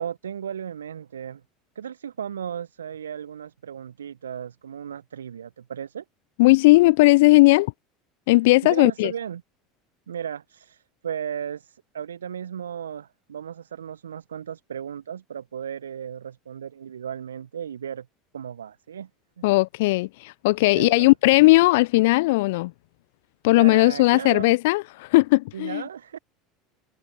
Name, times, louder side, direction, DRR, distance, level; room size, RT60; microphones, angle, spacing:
voice 1, 0.0-1.4 1.7-6.0 8.6-9.4 10.1-18.1 18.3-19.1 20.7-21.1 23.6-24.6 25.5-26.2, right 8 dB, 75° right, 1.3 m, -35 dB
voice 2, 6.4-7.7 8.3-9.1 19.4-22.7 23.4-25.8, left 21 dB, 60° left, 1.1 m, -17 dB
figure-of-eight pair, 75°, 0 cm